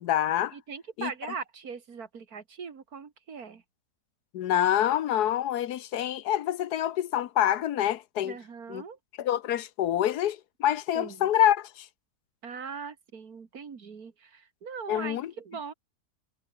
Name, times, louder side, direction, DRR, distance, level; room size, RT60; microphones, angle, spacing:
voice 1, 0.0-0.6 1.0-1.1 4.3-8.4 8.7-8.8 9.2-11.9 14.9-15.3, left 11 dB, 80° left, 1.4 m, -26 dB
voice 2, 0.5-3.6 8.2-9.0 10.9-11.3 12.4-15.7, right 6 dB, 65° right, 2.4 m, -40 dB
omnidirectional pair, 1.7 m